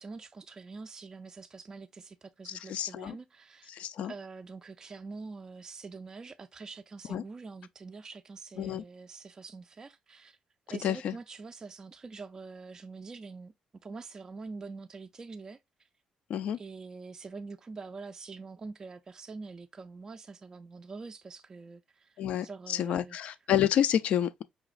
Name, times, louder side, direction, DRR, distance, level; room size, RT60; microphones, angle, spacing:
voice 1, 0.0-10.4 10.7-13.5 13.8-15.9 16.6-23.2, right 4 dB, 25° right, 0.3 m, -45 dB
voice 2, 2.5-3.2 3.7-4.1 7.1-7.2 8.6-8.8 10.8-11.2 16.3-16.6 22.2-24.4, left 10 dB, 70° left, 0.4 m, -29 dB
4.9 x 3.0 x 2.4 m
cardioid pair, 125°, 2 cm